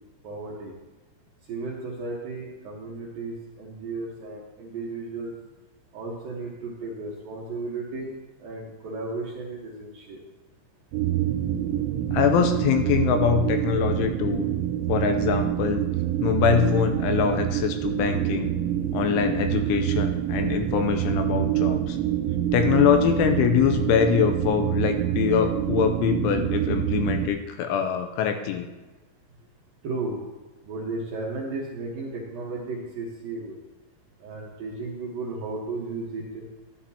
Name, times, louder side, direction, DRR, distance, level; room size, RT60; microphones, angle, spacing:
voice 1, 0.2-0.7 1.5-5.3 5.9-10.2 29.8-30.2 30.6-33.6 34.2-36.4, right 3 dB, 65° right, -4 dB, 2.3 m, -34 dB
sound 1, 10.9-27.3, right 11 dB, 85° right, 3.2 m, -26 dB
voice 2, 12.1-14.5 14.9-15.8 16.2-18.5 18.9-22.0 22.5-28.7, left 8 dB, 85° left, 6 dB, 3.0 m, -24 dB
13.0 x 12.0 x 2.9 m, 1.2 s
omnidirectional pair, 5.8 m